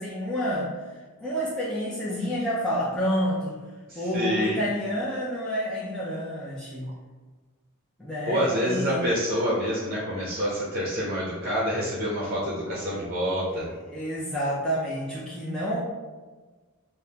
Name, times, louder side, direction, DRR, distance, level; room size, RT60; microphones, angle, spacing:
voice 1, 0.0-3.6 4.0-6.9 8.0-9.0 13.8-15.8, equal, 5° left, -8 dB, 0.5 m, -29 dB
voice 2, 3.9-4.6 8.3-13.7, equal, 45° right, -5 dB, 0.7 m, -27 dB
5.1 x 2.1 x 2.8 m, 1.4 s
head